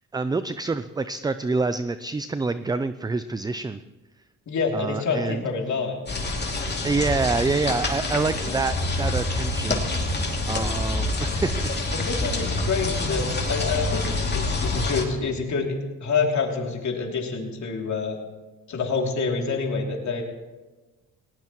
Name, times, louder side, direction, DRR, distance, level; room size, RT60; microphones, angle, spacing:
voice 1, 0.1-3.8 4.7-5.4 6.8-9.8 10.5-11.7, right 3 dB, 10° right, 12 dB, 0.4 m, -27 dB
voice 2, 4.5-6.0 11.9-18.2 18.7-20.2, left 4 dB, 55° left, 0 dB, 3.0 m, -27 dB
sound 1, 6.1-15.1, left 2 dB, 30° left, 2.6 m, -26 dB
19.0 x 18.0 x 3.1 m, 1.2 s
cardioid pair, 90°, 34 cm